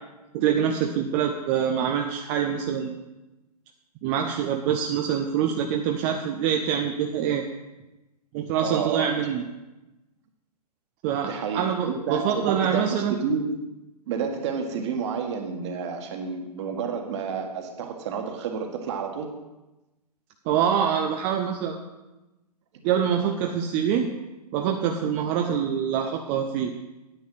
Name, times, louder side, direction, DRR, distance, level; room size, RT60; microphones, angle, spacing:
voice 1, 0.3-3.0 4.0-7.4 8.3-9.4 11.0-13.1 20.5-21.8 22.8-24.1 24.5-26.7, right 8 dB, 25° right, 4 dB, 0.6 m, -25 dB
voice 2, 8.6-9.2 11.3-13.5 14.1-19.3, right 6 dB, 45° right, 3 dB, 1.7 m, -30 dB
9.8 x 8.2 x 5.6 m, 1.0 s
figure-of-eight pair, 125°, 21 cm